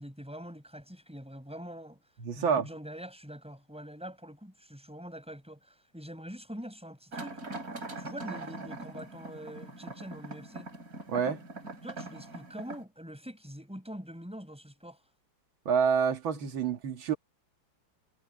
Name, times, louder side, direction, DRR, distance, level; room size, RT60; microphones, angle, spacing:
voice 1, 0.0-2.0 2.4-7.4 8.0-10.7 11.8-15.0, equal, 5° right, 6.0 m, -44 dB
voice 2, 2.2-2.7 11.1-11.4 15.7-17.2, right 6 dB, 90° right, 2.4 m, -28 dB
sound 1, 7.1-12.8, right 2 dB, 45° right, 5.0 m, -42 dB
omnidirectional pair, 2.1 m